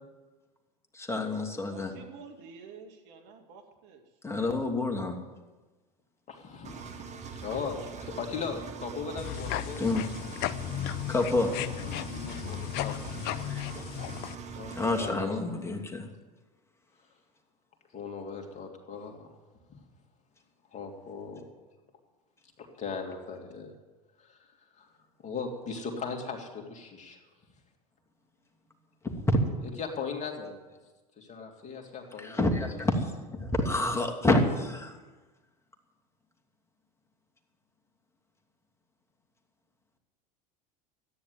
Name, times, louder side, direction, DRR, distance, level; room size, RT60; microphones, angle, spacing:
voice 1, 0.9-1.9 4.2-5.1 9.8-10.0 11.1-11.5 13.5-13.6 14.7-16.1 29.0-29.3 32.2-33.1 33.3-34.9, left 2 dB, 15° left, 2 dB, 2.8 m, -28 dB
voice 2, 1.7-4.0 7.6-8.4, right 5 dB, 55° right, 4 dB, 2.3 m, -50 dB
voice 3, 6.3-9.8 12.3-13.2 14.5-15.5 17.9-19.3 19.7-19.8 20.7-21.4 22.6-23.7 24.2-24.4 24.7-24.9 25.2-27.2 29.8-30.6 31.2-32.7, left 5 dB, 35° left, 2 dB, 3.0 m, -38 dB
Engine, 6.6-15.1, right 6 dB, 35° right, 1.9 m, -42 dB
sound 1, 9.2-14.3, left 13 dB, 50° left, 0.7 m, -35 dB
13.5 x 10.0 x 9.7 m, 1.2 s
hypercardioid pair, 80°, 21 cm